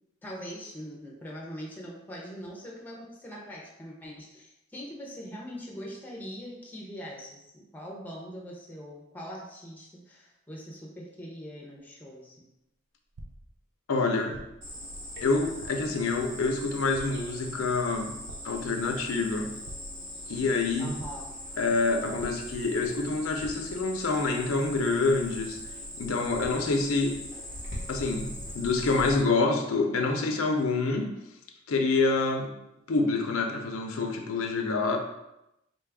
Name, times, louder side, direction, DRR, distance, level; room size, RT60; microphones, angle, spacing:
voice 1, 0.2-12.4 20.8-21.3, equal, 10° left, -2 dB, 0.6 m, -42 dB
sound 1, 13.1-13.6 14.3-14.7 15.6-16.0 16.9-17.4 18.3-18.7 19.6-20.2 21.0-21.4 22.2-22.7 23.4-23.8, right 1 dB, 80° right, 0.5 m, -46 dB
voice 2, 13.9-14.4 15.2-18.1 18.4-19.5 20.3-20.9 21.6-25.6 26.0-27.2 27.9-31.1 31.7-32.5 32.9-35.0, left 3 dB, 80° left, 3 dB, 0.5 m, -27 dB
Cricket, 14.6-29.2, left 1 dB, 60° right, 1.0 m, -41 dB
3.9 x 2.3 x 3.4 m, 0.87 s
head